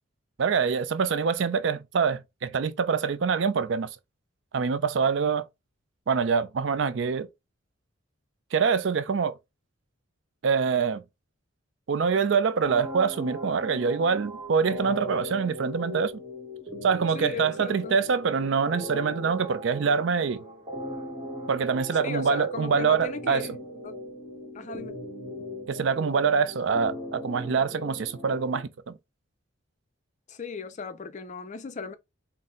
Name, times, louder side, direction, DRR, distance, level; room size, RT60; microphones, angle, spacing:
voice 1, 0.4-3.9 4.5-5.4 6.1-7.3 8.5-9.3 10.4-11.0 11.9-16.1 16.8-20.5 21.5-23.5 25.7-28.9, right 5 dB, 65° right, 0.4 m, -25 dB
sound 1, 12.6-28.6, left 1 dB, 15° right, 1.3 m, -38 dB
voice 2, 17.1-18.1 21.9-23.6 23.8-24.0 24.5-25.0 30.3-32.0, left 4 dB, 35° left, 0.4 m, -37 dB
4.2 x 2.1 x 3.7 m
head